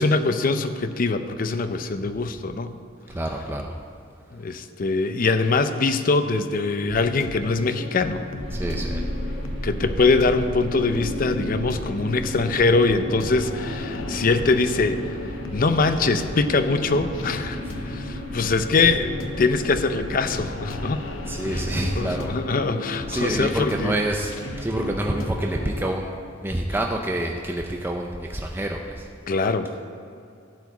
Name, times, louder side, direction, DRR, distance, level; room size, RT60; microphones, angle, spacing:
voice 1, 0.0-2.8 4.3-8.2 9.6-15.1 15.5-21.0 21.5-24.0 29.3-29.7, left 3 dB, 45° left, 9 dB, 0.5 m, -23 dB
voice 2, 3.1-3.6 8.5-9.1 17.7-17.9 21.3-22.3 23.1-26.1 26.4-29.1, right 1 dB, 10° right, 1 dB, 0.5 m, -27 dB
sound 1, 6.9-25.9, left 2 dB, 85° left, 0.8 m, -35 dB
sound 2, 8.4-22.3, equal, 55° right, 2.2 m, -34 dB
12.0 x 4.9 x 8.0 m, 2.5 s
head